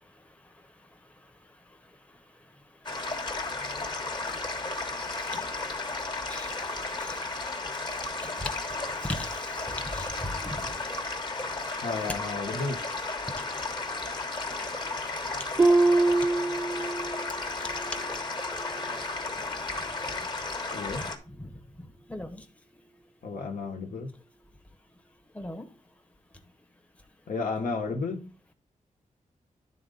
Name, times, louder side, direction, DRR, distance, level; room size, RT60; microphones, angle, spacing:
voice 1, 0.0-10.8 11.7-12.1 12.9-13.0 13.4-13.5 17.6-18.0 19.4-19.5 20.9-22.5 25.3-25.7, left 1 dB, 10° left, 0.8 m, -43 dB
sound 1, 2.8-21.2, left 3 dB, 35° left, 1.1 m, -34 dB
voice 2, 11.8-12.8 20.7-21.0 23.2-24.1 27.3-28.3, left 4 dB, 80° left, 1.2 m, -32 dB
Harp, 15.6-17.4 17.7-18.1 18.7-18.8, right 2 dB, 20° right, 0.4 m, -24 dB
10.5 x 3.9 x 3.8 m
wide cardioid pair, 150°, 13 cm